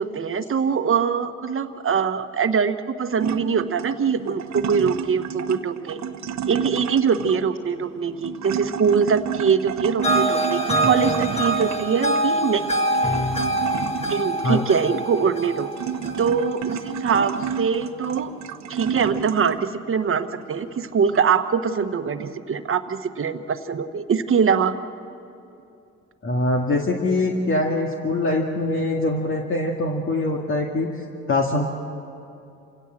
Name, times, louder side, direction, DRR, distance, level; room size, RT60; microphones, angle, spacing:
voice 1, 0.0-6.0 6.5-12.6 14.1-15.7 16.2-18.3 18.7-24.8, right 6 dB, 45° right, 9 dB, 1.2 m, -23 dB
sound 1, 3.2-19.8 20.3-21.3, right 8 dB, 65° right, 1.1 m, -31 dB
sound 2, 10.0-17.2, right 1 dB, 20° left, 2.0 m, -25 dB
voice 2, 26.2-30.9 31.3-31.7, left 2 dB, 45° left, 0 dB, 2.1 m, -23 dB
27.5 x 17.0 x 7.6 m, 2.7 s
cardioid pair, 90°, 30 cm